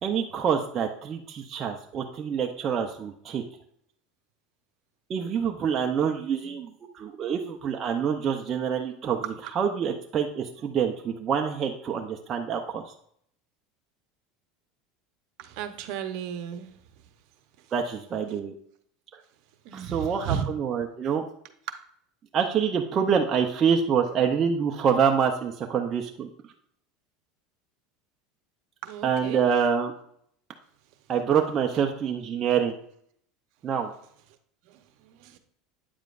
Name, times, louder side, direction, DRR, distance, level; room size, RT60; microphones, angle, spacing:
voice 1, 0.0-3.4 5.1-9.2 9.5-12.9 17.7-18.5 19.7-21.2 22.3-26.3 29.0-29.9 31.1-32.7 33.6-33.9, right 7 dB, 30° right, 2 dB, 0.6 m, -26 dB
voice 2, 15.4-16.7 19.6-20.5 28.8-29.4 34.7-35.4, right 8 dB, 65° right, 8 dB, 0.9 m, -34 dB
9.2 x 7.3 x 2.5 m, 0.66 s
supercardioid pair, 145°, 0 cm